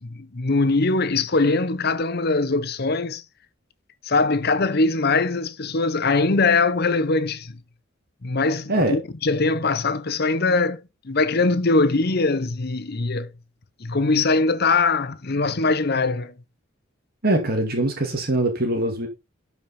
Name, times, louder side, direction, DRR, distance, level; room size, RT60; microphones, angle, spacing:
voice 1, 0.0-3.2 4.0-7.6 8.2-13.3 13.8-16.3, left 3 dB, 50° left, 0.9 m, -22 dB
voice 2, 17.2-19.1, right 1 dB, 50° right, 2.3 m, -22 dB
12.5 x 5.5 x 4.3 m
head